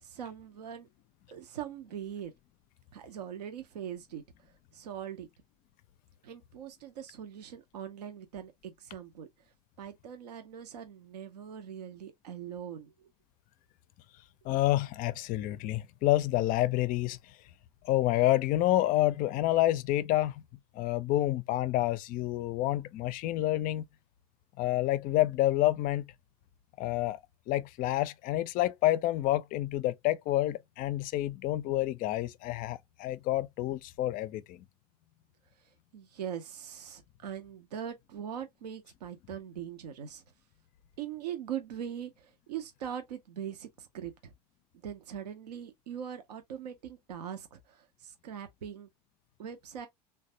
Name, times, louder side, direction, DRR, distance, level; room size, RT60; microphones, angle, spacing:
voice 1, 0.0-0.9 1.3-2.3 2.9-4.2 4.7-5.3 6.2-9.3 9.8-12.9 14.5-14.6 35.6-40.2 41.0-44.3 44.8-48.9 49.4-49.9, right 9 dB, 75° right, 0.6 m, -41 dB
voice 2, 14.4-17.2 17.8-20.4 20.7-23.8 24.6-26.1 26.8-27.2 27.5-34.6, left 15 dB, 45° left, 0.4 m, -28 dB
3.2 x 2.2 x 2.6 m
hypercardioid pair, 75°, 21 cm